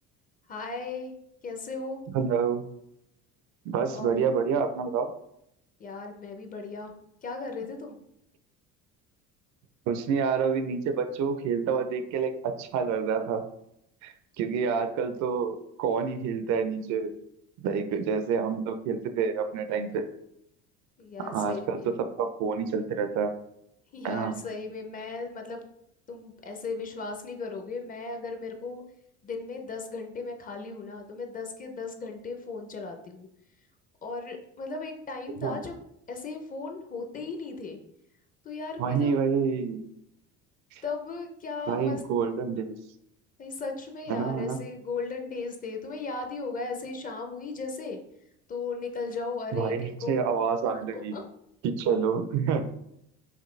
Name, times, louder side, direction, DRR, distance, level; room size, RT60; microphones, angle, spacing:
voice 1, 0.5-1.1 1.4-2.0 3.9-4.1 5.8-6.9 7.2-8.0 21.0-21.9 23.9-25.6 26.1-28.8 29.2-33.3 34.0-35.8 36.1-37.8 38.4-39.2 40.8-42.0 43.4-48.0 48.5-50.2 50.9-51.2, left 4 dB, 25° left, 3 dB, 0.6 m, -36 dB
voice 2, 2.1-2.6 3.7-5.1 9.9-13.4 14.0-17.1 17.6-20.0 21.2-23.3 24.0-24.3 35.4-35.6 38.8-39.8 41.7-42.7 44.1-44.6 49.5-51.2 51.6-52.6, right 6 dB, 65° right, 9 dB, 0.5 m, -28 dB
5.0 x 2.7 x 3.2 m, 0.78 s
cardioid pair, 125°, 30 cm